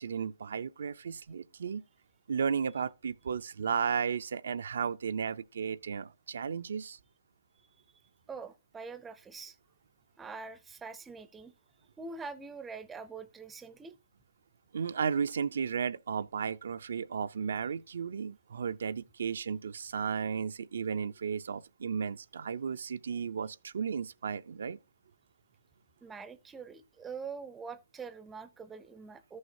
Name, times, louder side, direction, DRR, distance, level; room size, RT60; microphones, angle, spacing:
voice 1, 0.0-1.8 2.3-7.0 14.7-24.8, right 6 dB, 75° right, 0.4 m, -34 dB
voice 2, 8.3-9.6 10.2-11.5 12.0-13.9 26.0-29.4, right 5 dB, 10° right, 0.5 m, -44 dB
13.5 x 6.4 x 2.6 m
hypercardioid pair, 160°, 0 cm